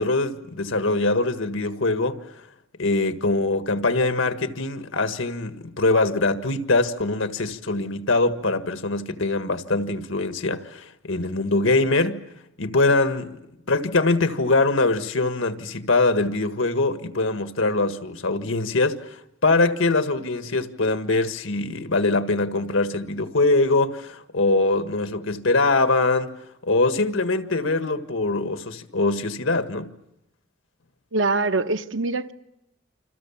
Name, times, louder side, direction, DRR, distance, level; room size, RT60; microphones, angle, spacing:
voice 1, 0.0-2.2 2.8-12.2 12.6-13.4 13.7-19.0 19.4-26.3 26.6-29.9, left 2 dB, 90° left, 1.7 m, -23 dB
voice 2, 31.1-32.3, right 3 dB, 80° right, 1.0 m, -23 dB
28.5 x 27.0 x 7.2 m
head